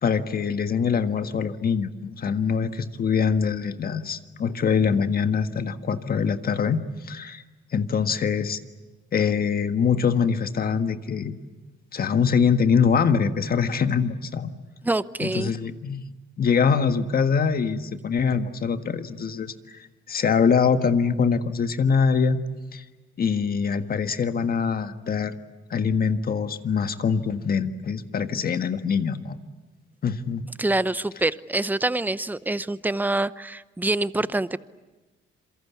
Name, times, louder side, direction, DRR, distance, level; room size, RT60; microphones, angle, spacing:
voice 1, 0.0-6.8 7.0-7.4 7.7-8.6 9.1-11.3 11.9-14.5 15.2-16.1 16.4-19.8 20.1-22.4 22.7-22.8 23.2-25.3 25.7-29.4 30.0-30.4, left 6 dB, 50° left, 8 dB, 1.6 m, -23 dB
voice 2, 14.8-15.5 30.6-34.6, right 2 dB, 10° right, 15 dB, 0.8 m, -25 dB
27.5 x 23.0 x 8.4 m, 1.2 s
cardioid pair, 90°, 20 cm